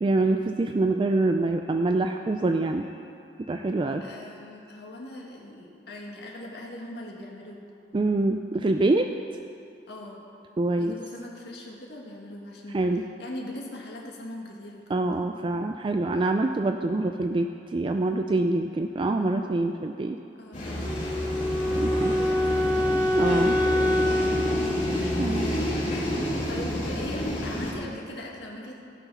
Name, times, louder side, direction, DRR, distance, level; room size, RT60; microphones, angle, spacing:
voice 1, 0.0-2.9 3.5-4.0 7.9-9.1 10.6-11.0 12.7-13.0 14.9-20.2 21.7-22.1 23.1-23.6 25.2-25.5, right 2 dB, 30° right, 5 dB, 0.4 m, -25 dB
voice 2, 4.0-7.6 9.9-10.2 10.8-12.9 13.2-15.2 20.4-20.9 21.9-23.1 24.9-25.8 26.5-28.8, left 1 dB, 65° left, -2 dB, 1.9 m, -41 dB
sound 1, 20.5-27.7, equal, 45° left, 2.9 m, -29 dB
Wind instrument woodwind instrument, 20.8-25.9, left 1 dB, 10° right, 1.2 m, -26 dB
17.5 x 6.0 x 5.5 m, 2.8 s
head